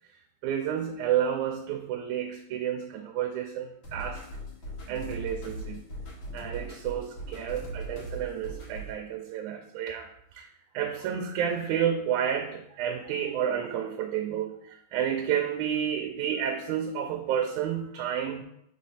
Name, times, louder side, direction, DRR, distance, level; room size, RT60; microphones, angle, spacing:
voice 1, 0.4-4.3 4.9-5.8 6.3-10.1 10.3-10.5 10.7-18.4, right 9 dB, 90° right, 4 dB, 2.0 m, -30 dB
sound 1, 3.8-8.9, right 1 dB, 50° left, 2.6 m, -39 dB
4.9 x 4.2 x 5.6 m, 0.75 s
omnidirectional pair, 3.3 m